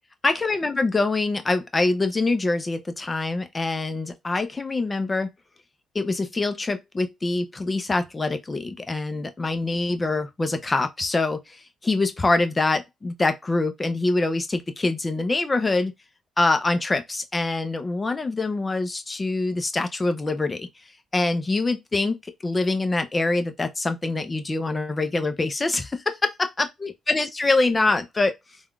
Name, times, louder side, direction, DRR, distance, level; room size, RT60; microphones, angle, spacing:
voice 1, 0.2-5.3 5.9-11.6 11.8-15.9 16.4-20.7 21.1-22.2 22.4-28.3, left 3 dB, 25° left, 0.5 m, -24 dB
3.4 x 2.3 x 2.3 m
cardioid pair, 90°, 0 cm